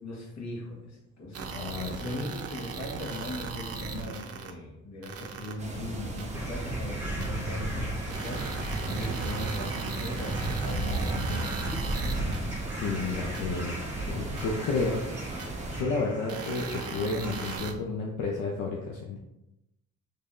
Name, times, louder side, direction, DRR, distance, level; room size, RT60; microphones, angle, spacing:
voice 1, 0.0-8.6 8.9-12.0, left 1 dB, 65° left, -2 dB, 1.5 m, -38 dB
sound 1, 1.3-4.5 5.0-5.5 6.2-6.3 7.2-7.3 8.1-12.4 13.3-13.4 14.4-14.5 15.4-15.5 16.3-17.7, right 5 dB, 55° right, 0.7 m, -38 dB
voice 2, 1.5-2.2 12.7-13.8 14.1-15.1 15.8-19.2, left 3 dB, 85° left, -1 dB, 0.6 m, -31 dB
sound 2, 5.6-15.8, right 1 dB, 25° right, 1.0 m, -34 dB
sound 3, 6.3-17.6, equal, 10° right, 1.4 m, -41 dB
5.4 x 3.3 x 2.5 m, 0.90 s
cardioid pair, 90°, 30 cm